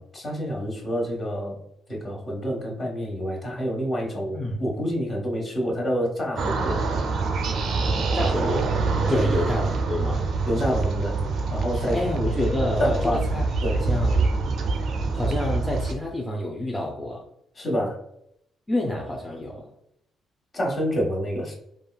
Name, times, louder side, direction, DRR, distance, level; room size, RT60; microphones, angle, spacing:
voice 1, 0.0-1.5 1.9-6.8 9.1-9.2 10.5-11.1 11.5-12.0 12.8-13.2 13.6-13.9 17.5-18.0 20.5-21.5, equal, 35° left, -2 dB, 1.1 m, -27 dB
sound 1, 6.4-15.9, right 3 dB, 65° right, 0.4 m, -25 dB
voice 2, 8.1-8.7 9.1-10.3 11.7-13.5 13.9-14.3 15.1-17.2 18.7-19.7, left 1 dB, 10° left, -2 dB, 0.5 m, -28 dB
3.4 x 2.3 x 2.2 m, 0.75 s
cardioid pair, 90°, 0 cm